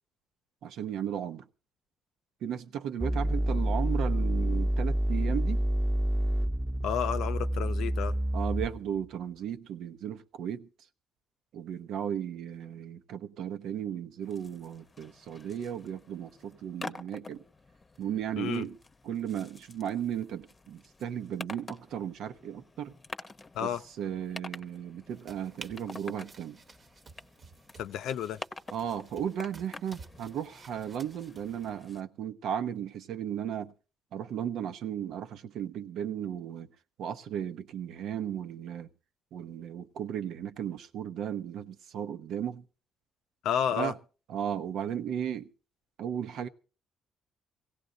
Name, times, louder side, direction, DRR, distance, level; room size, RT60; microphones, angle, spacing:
voice 1, 0.6-1.4 2.4-5.6 8.3-10.7 11.5-17.4 18.0-18.8 19.0-22.9 23.6-23.7 24.0-26.6 28.7-33.7 34.1-36.7 37.0-38.9 39.3-42.6 43.7-44.0 44.3-45.5 46.0-46.5, right 9 dB, 80° right, 0.9 m, -35 dB
sound 1, 3.0-9.0, right 1 dB, 15° right, 1.1 m, -28 dB
voice 2, 6.8-8.1 18.3-18.7 23.5-23.8 27.8-28.4 43.4-43.9, left 9 dB, 85° left, 0.6 m, -31 dB
sound 2, 14.2-32.0, left 3 dB, 30° left, 0.8 m, -48 dB
sound 3, 25.1-31.7, right 4 dB, 45° right, 1.1 m, -53 dB
17.0 x 16.5 x 3.9 m
cardioid pair, 90°, 0 cm